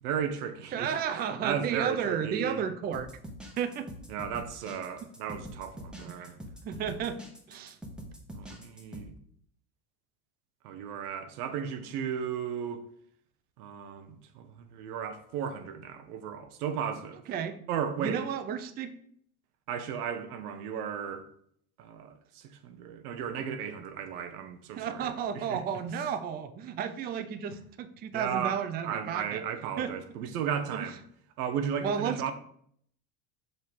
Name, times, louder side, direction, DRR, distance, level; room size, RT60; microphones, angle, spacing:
voice 1, 0.0-1.0 1.4-2.6 4.1-6.4 8.3-9.1 10.6-12.8 13.6-17.2 17.7-18.3 19.7-21.3 21.8-25.6 28.1-31.0 31.4-32.3, right 8 dB, 90° right, 1.0 m, -35 dB
voice 2, 0.7-3.1 3.6-3.9 6.0-6.3 6.6-7.2 7.5-7.8 17.3-17.6 18.0-18.9 24.8-29.4 29.8-29.9 30.7-30.9 31.8-32.3, right 7 dB, 25° right, 0.4 m, -33 dB
sound 1, 2.9-9.1, equal, ahead, 0.9 m, -44 dB
6.1 x 5.4 x 3.6 m
supercardioid pair, 125°, 44 cm